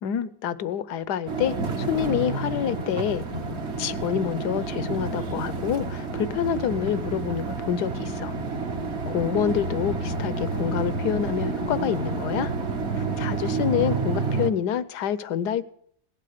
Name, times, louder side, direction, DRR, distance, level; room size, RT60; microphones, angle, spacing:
voice 1, 0.0-3.2 3.8-8.3 9.0-12.5 13.2-15.6, left 9 dB, 70° left, 1.4 m, -27 dB
sound 1, 1.3-14.5, right 3 dB, 40° right, 1.5 m, -29 dB
17.5 x 12.0 x 6.6 m
omnidirectional pair, 1.9 m